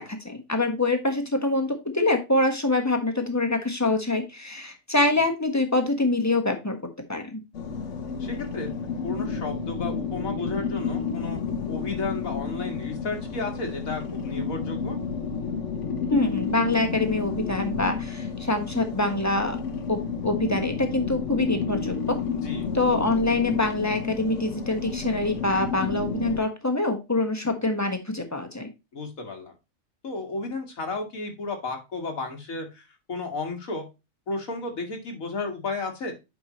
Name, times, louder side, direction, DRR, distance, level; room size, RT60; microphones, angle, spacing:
voice 1, 0.0-6.8 7.1-7.4 16.1-19.6 19.9-22.2 22.7-28.7, left 2 dB, 15° left, 5 dB, 1.3 m, -25 dB
sound 1, 7.5-26.4, left 5 dB, 65° left, 1.3 m, -31 dB
voice 2, 8.2-8.7 9.0-11.4 11.7-15.0 22.4-22.7 28.9-29.5 30.0-33.9 34.3-36.1, left 3 dB, 90° left, 2 dB, 2.5 m, -33 dB
8.4 x 5.4 x 3.0 m, 0.25 s
omnidirectional pair, 1.4 m